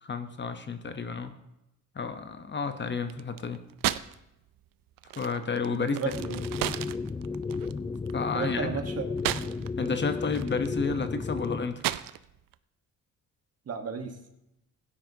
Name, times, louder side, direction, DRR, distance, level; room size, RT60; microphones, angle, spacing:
voice 1, 0.0-1.3 2.0-3.6 5.2-6.0 8.1-8.7 9.8-11.8, left 5 dB, 30° left, 8 dB, 0.8 m, -31 dB
sound 1, 3.0-4.2 4.5-9.9 10.2-12.5, right 14 dB, 75° right, 0.5 m, -34 dB
voice 2, 5.7-6.4 8.3-9.0 9.4-9.7 13.7-14.2, right 6 dB, 45° right, 6 dB, 1.3 m, -34 dB
sound 2, 6.1-11.7, left 4 dB, 15° left, 0.3 m, -33 dB
16.0 x 9.9 x 2.7 m, 0.87 s
cardioid pair, 105°, 34 cm